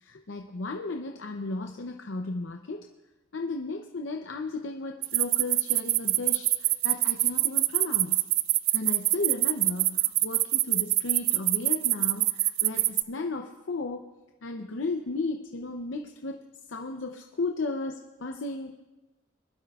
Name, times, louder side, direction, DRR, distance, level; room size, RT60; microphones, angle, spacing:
voice 1, 0.0-2.9 3.3-8.2 8.7-14.0 14.4-16.4 16.7-18.8, left 3 dB, 70° left, 3 dB, 0.7 m, -34 dB
sound 1, 5.0-13.0, right 18 dB, 90° right, 0.3 m, -24 dB
22.0 x 12.0 x 2.4 m, 1.1 s
head